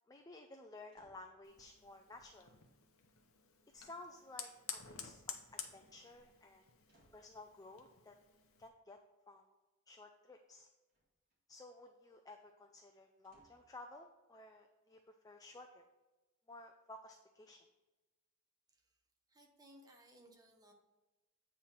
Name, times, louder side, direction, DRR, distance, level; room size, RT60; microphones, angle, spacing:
voice 1, 0.1-2.6 3.7-6.6 7.1-8.1 8.6-9.0 9.3-9.4 9.9-10.7 11.5-15.8 16.5-17.7, left 2 dB, 15° left, 4 dB, 0.4 m, -55 dB
sound 1, 0.9-1.4 3.9-4.6 5.5-6.0 6.8-7.3 10.9-11.4 13.2-13.8 14.4-14.5, right 1 dB, 40° right, 1.9 m, -72 dB
Fire, 1.4-8.7, left 8 dB, 80° left, 0.8 m, -52 dB
voice 2, 19.3-20.7, equal, 20° right, 2 dB, 0.9 m, -62 dB
8.5 x 3.2 x 5.7 m, 1.1 s
head